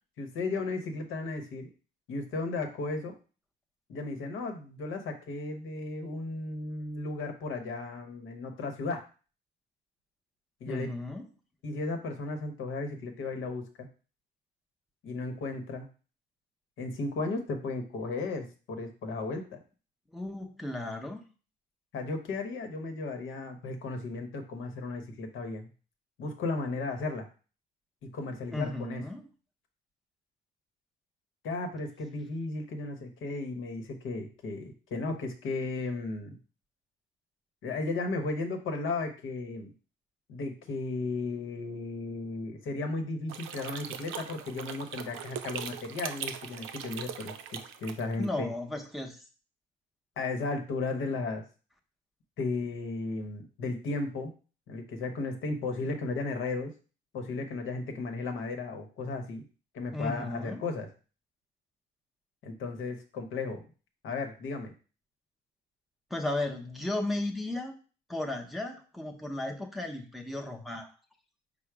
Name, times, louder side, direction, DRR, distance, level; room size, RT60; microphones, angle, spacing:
voice 1, 0.2-1.7 2.1-3.1 3.9-9.0 10.6-10.9 11.6-13.9 15.0-15.9 16.8-19.6 21.9-25.7 26.2-27.3 28.0-29.0 31.4-36.4 37.6-39.7 40.3-48.5 50.2-51.4 52.4-54.3 54.7-56.7 57.1-59.4 59.7-60.9 62.4-63.6 64.0-64.7, left 3 dB, 80° left, 5 dB, 0.9 m, -35 dB
voice 2, 10.7-11.2 20.1-21.2 28.5-29.2 48.2-49.2 59.9-60.6 66.1-67.7 68.1-70.9, left 2 dB, ahead, 1 dB, 0.7 m, -35 dB
sound 1, 43.3-48.3, right 8 dB, 85° right, 0.5 m, -40 dB
4.7 x 2.0 x 4.6 m, 0.36 s
cardioid pair, 90°, 20 cm